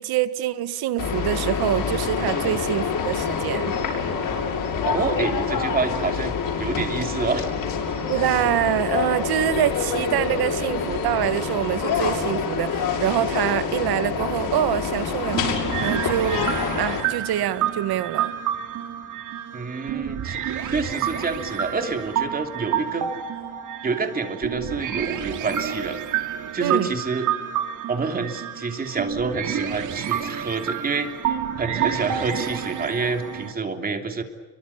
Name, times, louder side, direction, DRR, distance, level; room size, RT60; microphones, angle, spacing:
voice 1, 0.0-3.7 8.1-15.5 15.8-16.5 16.8-18.4 26.6-26.9, right 12 dB, 65° right, 1.7 m, -25 dB
sound 1, 1.0-17.0, left 6 dB, 55° left, 7.5 m, -26 dB
voice 2, 4.8-7.5 12.1-12.2 19.5-23.1 23.8-26.2 26.5-27.3 27.9-34.2, right 4 dB, 20° right, 3.0 m, -28 dB
sound 2, 15.3-33.5, right 9 dB, 45° right, 2.7 m, -29 dB
29.5 x 24.0 x 7.0 m
cardioid pair, 160°, 41 cm